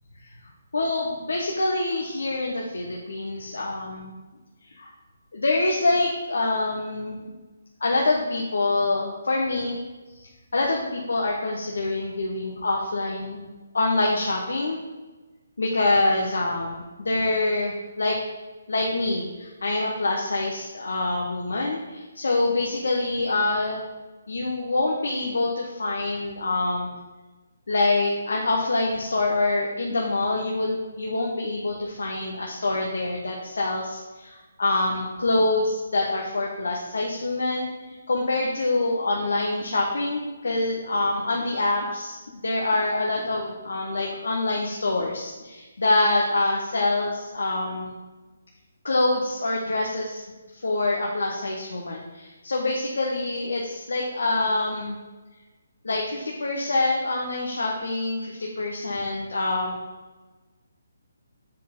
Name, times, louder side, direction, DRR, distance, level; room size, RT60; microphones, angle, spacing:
voice 1, 0.7-4.1 4.8-4.9 5.3-7.3 7.8-9.8 10.5-13.4 13.7-14.8 15.6-18.2 18.7-23.8 24.3-26.9 27.7-37.7 38.1-42.2 42.4-47.9 48.8-50.2 50.6-55.0 55.8-59.8, left 2 dB, 80° left, -1 dB, 1.2 m, -25 dB
7.3 x 4.7 x 5.3 m, 1.2 s
hypercardioid pair, 160°, 0 cm